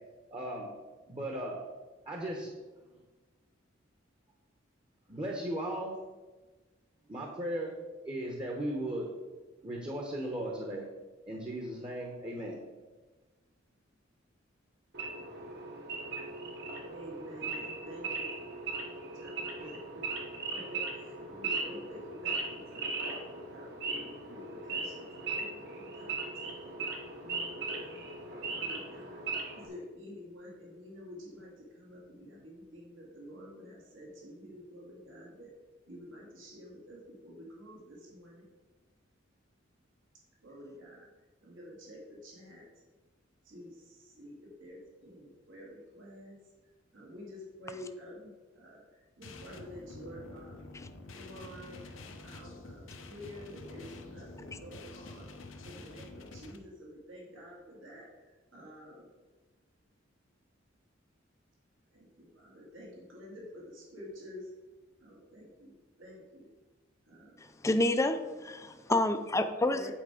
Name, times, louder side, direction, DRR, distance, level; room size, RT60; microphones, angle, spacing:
voice 1, 0.3-0.7 1.1-1.6 2.1-2.6 2.8-2.9 5.1-6.0 7.1-7.7 8.0-9.1 9.6-10.9 11.3-12.6, right 1 dB, 25° right, 0 dB, 1.0 m, -36 dB
Wild animals / Idling, 14.9-29.7, right 3 dB, 60° right, 1.5 m, -38 dB
voice 2, 16.9-18.3 19.1-20.0 20.5-26.8 27.2-28.0 28.5-29.2 29.5-35.5 35.9-38.5 40.4-41.1 41.4-42.6 43.4-46.4 46.9-48.8 49.2-50.7 51.1-55.3 55.6-59.1 61.9-64.5 65.0-66.5 67.1-67.4 69.7-69.9, equal, 75° right, -3 dB, 2.1 m, -49 dB
sound 1, 49.2-56.6, left 2 dB, 85° left, 0.8 m, -48 dB
voice 3, 67.6-69.9, left 2 dB, 15° left, 8 dB, 0.5 m, -28 dB
9.1 x 4.7 x 5.0 m, 1.2 s
head